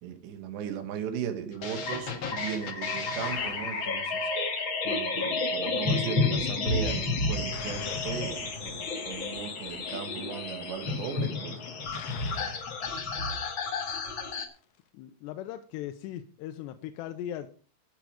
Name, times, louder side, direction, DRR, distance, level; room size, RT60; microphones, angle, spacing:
voice 1, 0.0-4.3 4.9-11.6, right 8 dB, 80° right, 8 dB, 3.7 m, -37 dB
sound 1, 1.6-14.4, left 3 dB, 50° left, 1.4 m, -31 dB
sound 2, 3.2-4.6 7.3-13.8, left 9 dB, 65° left, 2.4 m, -47 dB
voice 2, 14.9-17.5, left 11 dB, 85° left, 8 dB, 2.9 m, -38 dB
12.5 x 9.6 x 5.1 m, 0.40 s
omnidirectional pair, 5.0 m